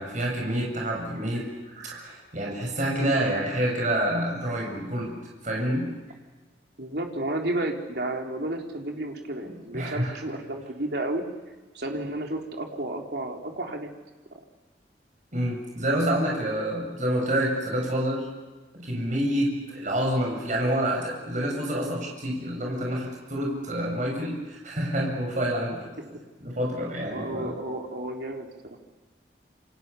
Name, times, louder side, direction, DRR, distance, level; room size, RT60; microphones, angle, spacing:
voice 1, 0.0-1.5 1.8-5.1 5.4-5.9 9.7-10.2 15.3-18.3 18.8-25.8 26.4-27.5, right 1 dB, 45° right, -1 dB, 7.3 m, -27 dB
voice 2, 6.8-11.2 11.7-13.9 14.3-14.4 27.1-28.8, right 1 dB, 60° right, 1 dB, 3.9 m, -32 dB
29.0 x 27.5 x 7.0 m, 1.2 s
head